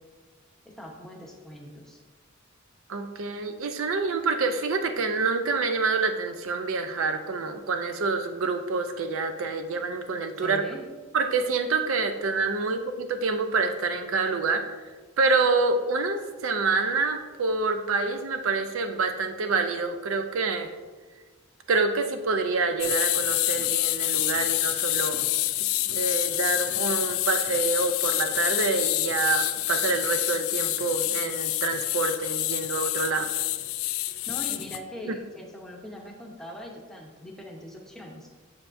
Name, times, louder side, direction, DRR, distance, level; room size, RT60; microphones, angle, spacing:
voice 1, 0.6-2.0 10.4-10.8 34.3-38.3, equal, ahead, 0 dB, 0.8 m, -41 dB
voice 2, 2.9-10.6 11.1-14.7 15.2-20.7 21.7-25.2 25.6-33.3 35.1-35.2, right 4 dB, 70° right, 8 dB, 0.5 m, -27 dB
sound 1, 22.8-34.8, left 16 dB, 70° left, 0.3 m, -27 dB
7.1 x 7.1 x 2.5 m, 1.4 s
head